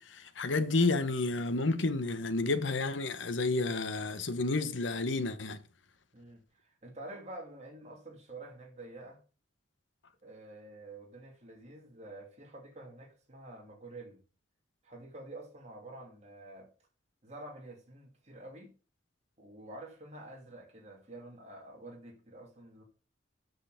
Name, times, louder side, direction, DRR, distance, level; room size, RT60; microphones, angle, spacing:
voice 1, 0.0-5.6, left 3 dB, 75° left, 1.1 m, -30 dB
voice 2, 6.1-9.2 10.2-14.2 14.8-16.7 17.2-18.7 19.4-22.8, right 2 dB, 35° right, 2.7 m, -48 dB
7.9 x 6.7 x 5.1 m
head